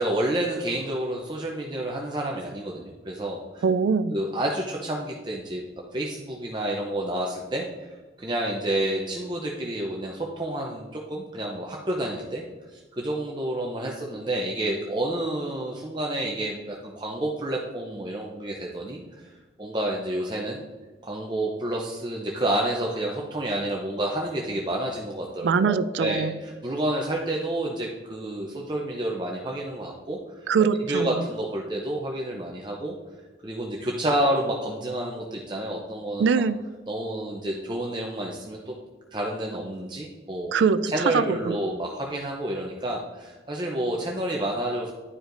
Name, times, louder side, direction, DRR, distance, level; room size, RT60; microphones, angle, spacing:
voice 1, 0.0-3.6 4.1-5.6 5.9-7.9 8.2-12.4 12.7-19.3 19.6-20.6 21.0-30.5 30.9-32.9 33.4-36.3 36.9-38.7 39.1-40.5 40.9-44.9, right 1 dB, 25° right, -1 dB, 0.6 m, -29 dB
voice 2, 3.6-4.2 25.4-26.4 30.5-31.1 36.2-36.6 40.5-41.6, right 5 dB, 80° right, 13 dB, 0.4 m, -23 dB
11.0 x 5.0 x 2.6 m, 1.3 s
head